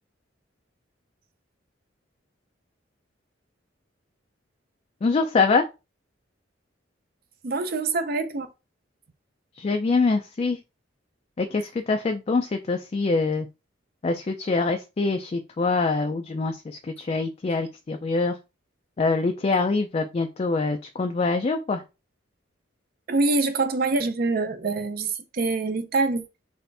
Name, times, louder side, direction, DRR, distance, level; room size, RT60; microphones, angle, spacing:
voice 1, 5.0-5.6 9.6-10.6 11.4-13.5 14.0-18.4 19.0-21.8, left 3 dB, 35° left, 0.3 m, -24 dB
voice 2, 7.4-8.5 23.1-26.2, right 3 dB, 50° right, 0.5 m, -25 dB
4.1 x 2.5 x 3.3 m
head